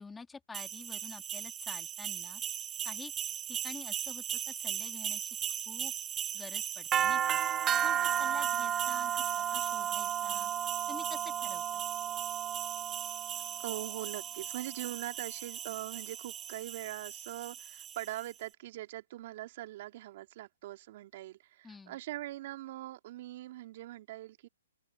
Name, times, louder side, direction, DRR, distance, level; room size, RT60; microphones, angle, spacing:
voice 1, 0.0-2.4 2.8-3.1 3.5-5.4 5.7-5.9 6.3-7.4 7.8-10.5 10.9-11.8 21.6-22.0, left 4 dB, 10° left, 2.4 m, -48 dB
sound 1, 0.5-18.3, right 10 dB, 20° right, 1.0 m, -35 dB
voice 2, 13.6-24.5, right 15 dB, 50° right, 3.0 m, -42 dB
open air
hypercardioid pair, 140°, 0 cm